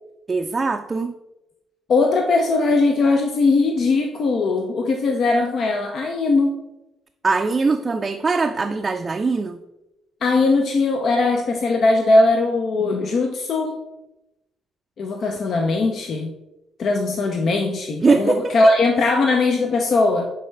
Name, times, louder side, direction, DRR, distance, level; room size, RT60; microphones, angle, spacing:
voice 1, 0.3-1.1 7.2-9.6 18.0-18.7, right 4 dB, 35° right, 6 dB, 0.4 m, -21 dB
voice 2, 1.9-6.5 10.2-13.8 15.0-16.3 16.8-20.3, left 3 dB, 55° left, 4 dB, 0.5 m, -19 dB
8.5 x 3.4 x 3.2 m, 0.96 s
hypercardioid pair, 50°, 0 cm